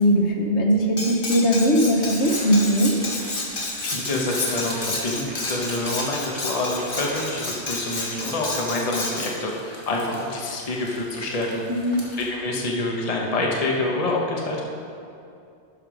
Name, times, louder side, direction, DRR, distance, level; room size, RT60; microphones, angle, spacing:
voice 1, 0.0-3.0 11.7-12.1, equal, 90° left, 1 dB, 1.4 m, -20 dB
Cutlery silverware, 1.0-9.4, left 2 dB, 55° left, 1.4 m, -31 dB
sound 1, 1.6-12.3, right 1 dB, 40° right, 1.8 m, -41 dB
sound 2, 2.0-2.7 3.0-3.5 4.2-5.1 5.4-6.3 6.6-7.4 7.8-8.6, equal, 5° right, 1.1 m, -42 dB
voice 2, 3.8-11.5 12.1-14.6, left 2 dB, 35° left, -1 dB, 1.0 m, -27 dB
11.5 x 5.3 x 5.0 m, 2.5 s
omnidirectional pair, 1.1 m